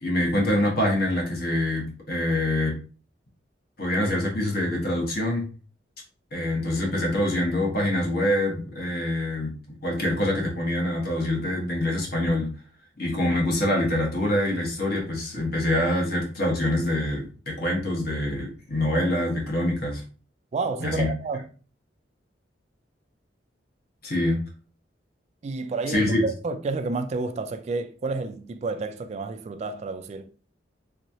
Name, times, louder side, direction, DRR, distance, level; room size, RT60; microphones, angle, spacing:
voice 1, 0.0-2.8 3.8-5.5 6.3-9.5 9.8-12.5 13.0-20.0 20.8-21.1 24.0-24.4 25.9-26.3, left 1 dB, 55° left, 1.2 m, -25 dB
voice 2, 20.5-21.5 25.4-30.3, right 3 dB, 40° right, 0.3 m, -30 dB
3.5 x 3.0 x 2.7 m
head